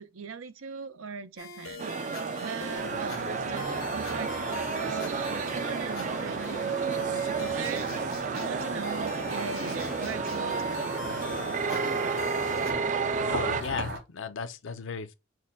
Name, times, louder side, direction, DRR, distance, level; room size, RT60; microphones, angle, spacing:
voice 1, 0.0-11.0, right 5 dB, 85° right, 0.6 m, -40 dB
sound 1, 1.4-12.7, left 5 dB, 90° left, 0.9 m, -43 dB
sound 2, 1.8-13.6, right 5 dB, 40° right, 0.4 m, -31 dB
sound 3, 2.7-14.0, equal, 65° right, 2.9 m, -38 dB
voice 2, 13.3-15.1, left 5 dB, 65° left, 0.5 m, -36 dB
6.3 x 2.2 x 3.6 m
head